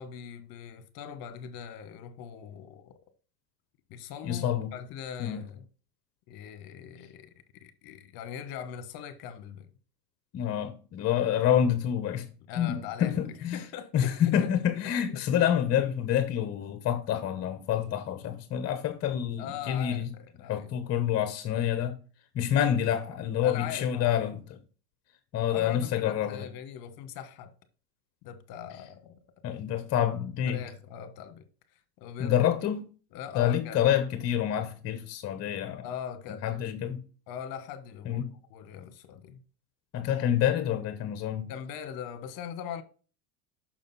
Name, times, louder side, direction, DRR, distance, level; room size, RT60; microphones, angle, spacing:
voice 1, 0.0-3.0 3.9-5.6 6.3-7.3 7.6-9.7 12.5-13.2 13.5-14.5 14.8-15.2 19.4-20.7 23.4-24.2 25.5-27.5 28.2-29.2 29.5-29.6 30.5-31.5 32.0-32.5 33.1-33.8 35.8-36.6 37.3-38.2 38.5-39.4 41.5-42.8, left 8 dB, 50° left, 1.3 m, -41 dB
voice 2, 4.2-4.7 5.2-5.4 10.3-12.3 12.6-13.6 13.9-20.1 20.5-22.0 22.3-24.4 25.3-26.5 29.4-30.6 32.2-32.8 33.3-35.8 36.4-37.0 38.1-38.3 39.9-41.5, left 10 dB, 30° left, 0.9 m, -27 dB
6.4 x 6.1 x 4.0 m
supercardioid pair, 125°, 47 cm